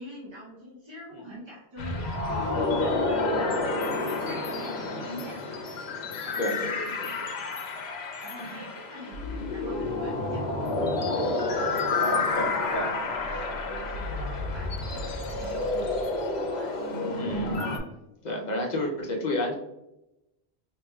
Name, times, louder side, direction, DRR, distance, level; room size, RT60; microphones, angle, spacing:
voice 1, 0.0-5.8 6.2-6.7 7.2-7.6 8.2-10.7 13.0-13.1 13.6-16.8 17.3-17.5 17.9-18.1, equal, 30° right, -5 dB, 0.6 m, -45 dB
sound 1, 1.8-17.8, left 3 dB, 75° left, 0.9 m, -29 dB
voice 2, 6.4-7.1 8.5-8.6 12.0-12.9 13.3-13.4 17.1-17.6 18.2-19.5, left 1 dB, 50° left, 0 dB, 0.8 m, -31 dB
4.3 x 2.7 x 2.3 m, 0.90 s
omnidirectional pair, 1.1 m